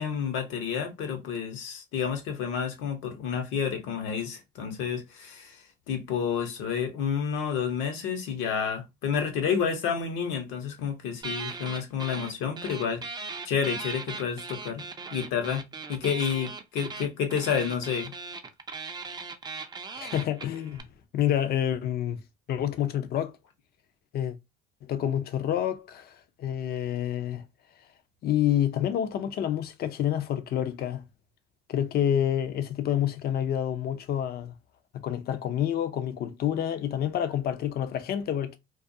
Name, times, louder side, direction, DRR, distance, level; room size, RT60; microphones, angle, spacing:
voice 1, 0.0-5.6 5.9-13.0 13.4-14.8 15.1-15.6 15.9-18.1, left 7 dB, 75° left, 0.8 m, -30 dB
sound 1, 11.2-12.3 12.6-20.8, right 4 dB, 20° right, 0.4 m, -38 dB
voice 2, 20.0-20.8 21.1-22.2 22.5-23.3 24.1-24.3 24.8-27.4 28.2-31.0 31.7-34.5 34.9-38.6, left 10 dB, 50° left, 0.5 m, -28 dB
2.3 x 2.2 x 2.6 m
supercardioid pair, 80°, 21 cm